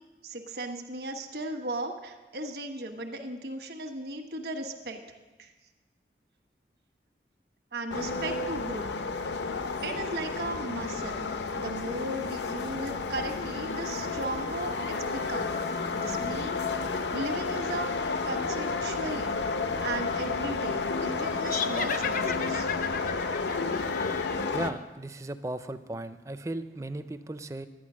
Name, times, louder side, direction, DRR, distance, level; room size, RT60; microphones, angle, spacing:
voice 1, 0.2-5.0 5.4-5.5 7.7-8.9 9.8-11.3 11.6-15.5 15.9-16.6 17.1-18.0 18.2-19.4 19.8-22.7, right 2 dB, 65° right, 4 dB, 1.2 m, -36 dB
sound 1, 7.9-24.7, left 4 dB, 80° left, 0.7 m, -31 dB
sound 2, 21.4-24.8, left 7 dB, 45° left, 0.5 m, -35 dB
voice 2, 24.5-27.7, right 2 dB, 15° right, 11 dB, 0.4 m, -36 dB
11.5 x 9.5 x 6.2 m, 1.2 s
head